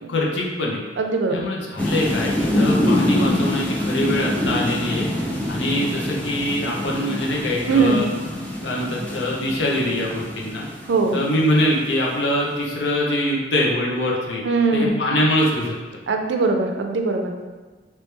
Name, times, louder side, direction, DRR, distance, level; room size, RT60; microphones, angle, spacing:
voice 1, 0.1-0.8 1.3-5.1 5.5-8.1 8.6-10.7 11.1-14.4 14.7-15.8, left 1 dB, 80° left, -3 dB, 0.7 m, -23 dB
voice 2, 1.0-1.4 7.7-8.0 10.9-11.2 14.4-14.9 16.1-17.3, right 4 dB, 85° right, 3 dB, 0.4 m, -20 dB
sound 1, 1.8-11.9, left 1 dB, 5° left, 0.4 m, -25 dB
3.1 x 3.0 x 3.3 m, 1.3 s
head